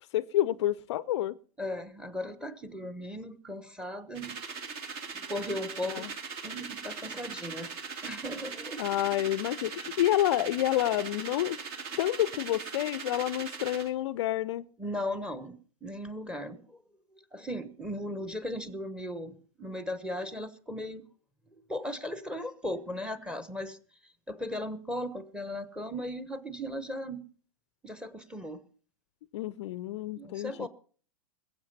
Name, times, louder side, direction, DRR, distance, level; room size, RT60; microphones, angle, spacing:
voice 1, 0.1-1.3 5.9-6.1 8.8-11.6 12.0-14.6 29.3-30.7, left 14 dB, 50° left, 0.5 m, -29 dB
voice 2, 1.6-4.4 5.1-6.1 6.4-7.7 8.0-8.8 14.8-16.8 17.3-21.0 21.7-23.8 24.3-27.3 27.8-28.6 30.2-30.7, left 1 dB, 5° right, 1.2 m, -37 dB
sound 1, 4.1-13.9, right 5 dB, 40° right, 2.3 m, -40 dB
21.0 x 8.0 x 5.5 m
figure-of-eight pair, 100°, 19 cm